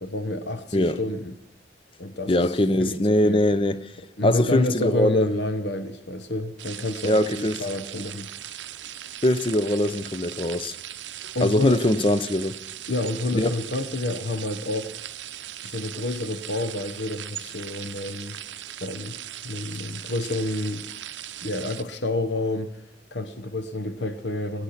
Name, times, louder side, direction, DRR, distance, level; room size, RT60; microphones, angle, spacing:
voice 1, 0.0-1.3 2.0-3.0 3.2-3.4 4.2-8.3 11.3-11.8 12.9-14.9 15.6-18.4 18.8-19.2 19.4-20.9 21.4-22.7 23.1-24.6, left 2 dB, 70° left, 1.0 m, -29 dB
voice 2, 2.3-3.9 4.2-5.3 7.0-7.6 9.2-10.7 11.4-12.6 13.3-13.6, left 1 dB, 30° left, 0.6 m, -22 dB
sound 1, 6.6-21.8, right 12 dB, 80° right, 0.7 m, -39 dB
20.5 x 8.3 x 5.8 m
head